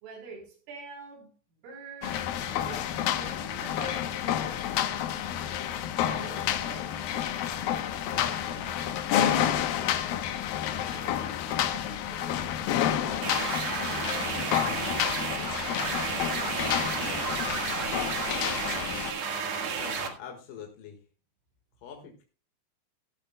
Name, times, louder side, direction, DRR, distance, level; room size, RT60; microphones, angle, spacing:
voice 1, 0.0-1.3 1.6-5.2 5.9-10.0 10.9-15.6, right 4 dB, 90° right, 6.2 m, -48 dB
sound 1, 2.0-19.1, left 10 dB, 80° left, 2.1 m, -30 dB
sound 2, 13.2-20.1, right 6 dB, 55° right, 2.0 m, -32 dB
voice 2, 19.7-21.0 21.8-22.2, left 7 dB, 60° left, 2.7 m, -44 dB
16.5 x 13.0 x 2.2 m
omnidirectional pair, 5.6 m